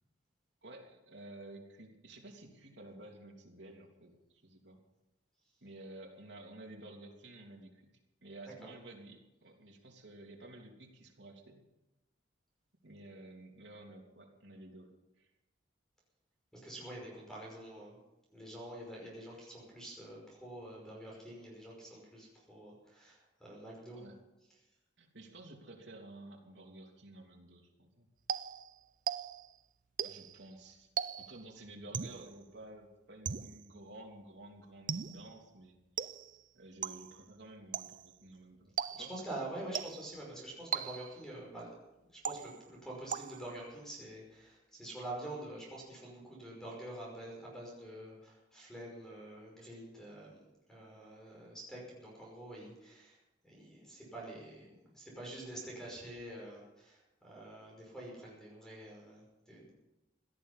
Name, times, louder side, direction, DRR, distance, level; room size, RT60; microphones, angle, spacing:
voice 1, 0.6-4.8 5.6-7.9 8.2-11.6 12.8-14.9 15.2-15.3 24.0-24.2 25.0-28.1 30.0-30.9 31.2-36.1 36.5-38.7 39.0-39.1, right 2 dB, 65° right, 0 dB, 3.1 m, -52 dB
voice 2, 16.5-18.0 18.3-24.0 38.9-41.7 42.0-50.4 50.7-53.2 53.4-59.7, right 1 dB, 5° left, -3 dB, 5.6 m, -47 dB
sound 1, 28.3-29.6 30.0-30.4 31.0-31.5 31.9-32.3 33.3-33.7 34.9-35.4 36.0-36.4 36.8-37.2 37.7-38.1 38.8-39.3 39.8-40.2 40.7-41.3 42.3-42.8 43.1-43.6, right 8 dB, 45° right, 0.5 m, -39 dB
17.5 x 13.0 x 5.7 m, 0.97 s
head